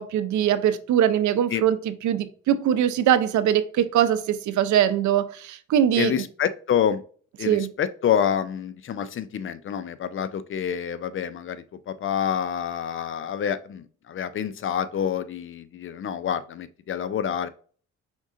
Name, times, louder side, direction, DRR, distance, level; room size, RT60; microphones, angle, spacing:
voice 1, 0.0-6.1 7.4-7.7, right 10 dB, 70° right, 0.6 m, -22 dB
voice 2, 6.0-7.0 7.4-17.5, left 8 dB, 45° left, 0.5 m, -27 dB
5.3 x 3.6 x 2.5 m
cardioid pair, 90°, 30 cm